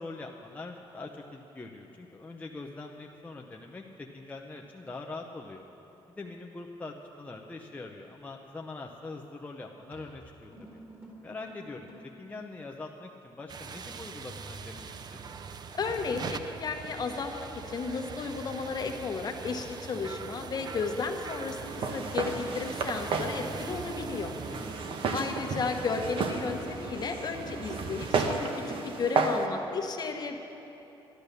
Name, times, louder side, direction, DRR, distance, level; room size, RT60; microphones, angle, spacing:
voice 1, 0.0-5.6 6.1-10.8 11.2-11.9 12.2-15.2 24.4-24.9, left 3 dB, 15° left, 0 dB, 0.7 m, -43 dB
sound 1, 9.9-12.3, right 1 dB, 20° right, 4.0 m, -51 dB
sound 2, 13.5-28.5, right 5 dB, 45° right, 0.5 m, -42 dB
voice 2, 15.7-21.6 21.9-24.3 25.1-30.4, left 4 dB, 40° left, 4 dB, 1.2 m, -33 dB
Walk footsteps, 21.6-29.5, right 4 dB, 60° right, 1.1 m, -33 dB
12.0 x 11.5 x 6.8 m, 3.0 s
cardioid pair, 120°, 10 cm